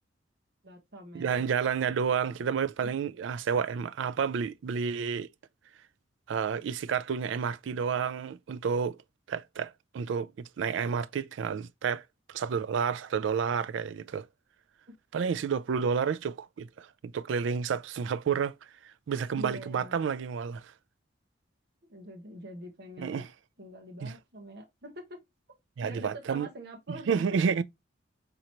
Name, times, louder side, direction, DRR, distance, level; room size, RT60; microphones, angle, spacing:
voice 1, 0.6-1.3 19.3-20.0 21.9-23.3 23.6-25.2 25.8-27.1, equal, 60° right, 1.1 m, -44 dB
voice 2, 1.1-5.3 6.3-9.0 9.3-12.0 12.3-14.3 15.1-18.6 19.1-20.6 23.0-23.3 24.0-24.1 25.8-26.5 27.1-27.6, right 6 dB, 75° right, 0.3 m, -30 dB
4.4 x 3.9 x 2.8 m
head